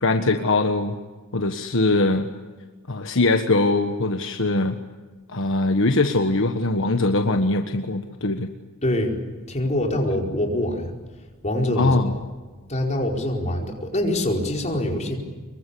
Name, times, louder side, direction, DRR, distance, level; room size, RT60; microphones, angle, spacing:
voice 1, 0.0-0.9 1.3-2.3 2.9-4.8 5.3-8.5 11.8-12.1, left 2 dB, 60° left, 6 dB, 1.4 m, -21 dB
voice 2, 8.8-9.2 9.5-11.0 11.4-12.1 12.7-15.2, left 1 dB, 30° left, 1 dB, 4.8 m, -24 dB
25.5 x 23.0 x 8.5 m, 1.3 s
head